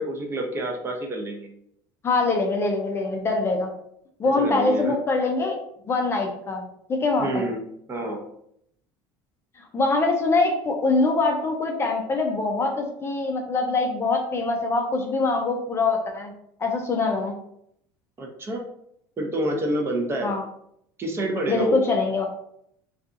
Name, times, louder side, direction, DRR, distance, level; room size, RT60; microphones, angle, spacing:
voice 1, 0.0-1.5 4.2-4.9 7.2-7.6 7.9-8.2 18.2-18.6 19.2-20.3 21.0-21.8, right 1 dB, 25° right, 2 dB, 0.6 m, -28 dB
voice 2, 2.0-3.7 4.2-5.6 5.9-6.6 6.9-7.4 9.7-16.3 16.6-17.3 20.2-20.4 21.5-22.3, left 3 dB, 25° left, 2 dB, 0.4 m, -23 dB
2.6 x 2.3 x 2.5 m, 0.73 s
supercardioid pair, 120°, 10 cm